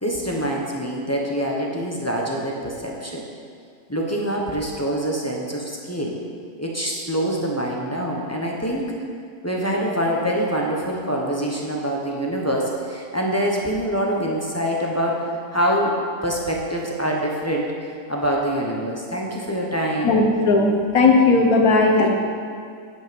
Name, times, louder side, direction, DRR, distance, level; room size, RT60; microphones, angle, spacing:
voice 1, 0.0-3.2 3.9-6.2 6.6-8.9 9.4-20.2, equal, 10° left, -2 dB, 0.8 m, -25 dB
voice 2, 20.0-22.1, left 3 dB, 60° left, 1 dB, 1.5 m, -16 dB
9.2 x 7.9 x 5.3 m, 2.2 s
omnidirectional pair, 1.9 m